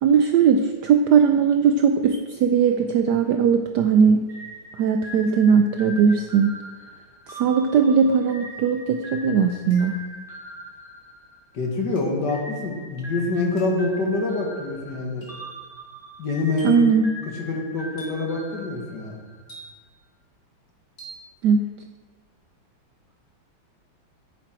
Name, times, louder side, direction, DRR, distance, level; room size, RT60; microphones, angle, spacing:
voice 1, 0.0-4.2 4.8-6.5 7.3-9.9 16.6-17.1 21.4-21.6, right 6 dB, 80° right, 6 dB, 0.9 m, -19 dB
sound 1, 4.3-11.7 12.3-19.5, equal, ahead, 2.9 m, -41 dB
sound 2, 8.5-8.6 9.7-10.2 12.0-12.3 13.6-13.9 15.2-15.5 16.6-17.0 18.0-18.4 19.5-20.0 21.0-21.3, right 2 dB, 25° left, 3.6 m, -45 dB
voice 2, 11.5-15.3 16.2-16.9 17.4-19.2, left 3 dB, 55° left, 1 dB, 2.0 m, -26 dB
9.9 x 9.5 x 4.4 m, 1.4 s
omnidirectional pair, 2.4 m